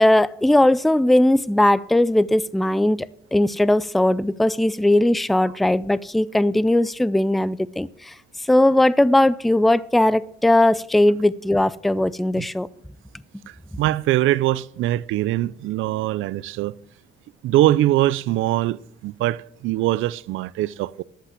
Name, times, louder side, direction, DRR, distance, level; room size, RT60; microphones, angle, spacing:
voice 1, 0.0-8.1 8.4-12.7, left 1 dB, ahead, 0.4 m, -19 dB
voice 2, 13.8-16.7 17.4-21.0, right 15 dB, 85° right, 0.5 m, -22 dB
13.5 x 5.8 x 7.5 m
cardioid pair, 90°, 20 cm